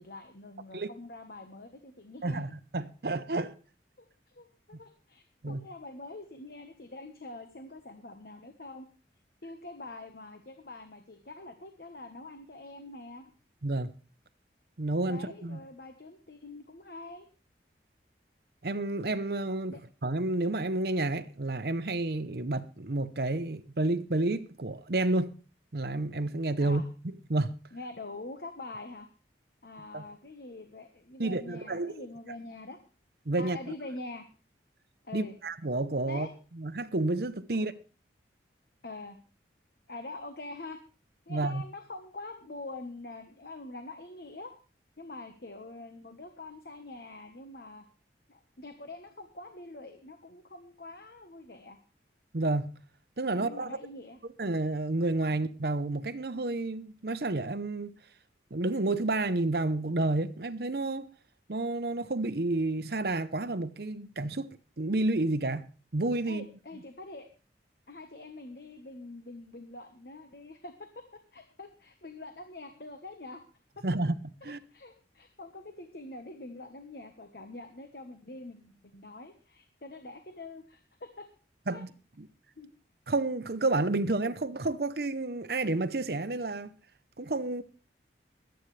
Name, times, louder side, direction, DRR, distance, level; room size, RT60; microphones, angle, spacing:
voice 1, 0.0-2.4 4.3-8.9 9.4-13.3 15.1-17.3 19.7-19.8 26.6-26.8 27.7-29.1 29.6-32.8 33.4-34.3 35.0-35.3 36.1-36.3 37.5-37.7 38.8-39.2 39.9-40.8 41.3-44.5 45.0-47.8 48.3-51.8 53.3-54.2 66.3-67.3 67.9-71.0 71.3-73.4 74.4-81.3 81.7-81.8 82.6-82.7, left 2 dB, 55° left, 1.2 m, -45 dB
voice 2, 2.2-3.5 5.4-5.6 13.6-13.9 14.8-15.6 18.6-25.4 25.7-27.6 29.9-30.0 31.2-32.1 33.3-33.6 35.1-36.3 36.6-37.7 41.3-41.6 52.3-52.8 53.2-53.8 54.4-58.0 58.5-61.1 61.5-65.7 65.9-66.5 73.8-74.2 74.4-74.6 81.7-81.9 82.2-82.3 83.1-86.7 87.2-87.6, right 2 dB, 55° right, 0.8 m, -30 dB
23.0 x 9.1 x 3.3 m
head